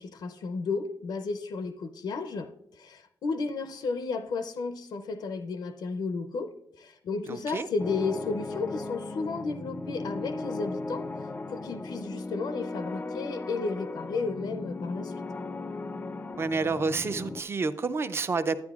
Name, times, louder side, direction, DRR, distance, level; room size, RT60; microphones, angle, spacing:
voice 1, 0.0-6.5 6.8-11.1 11.5-15.1, left 4 dB, 75° left, 0.5 m, -33 dB
voice 2, 7.3-7.7 16.4-18.6, right 4 dB, 35° right, 0.4 m, -29 dB
sound 1, 7.8-17.4, left 3 dB, 25° left, 0.4 m, -37 dB
11.0 x 9.7 x 2.4 m
cardioid pair, 105°, 8 cm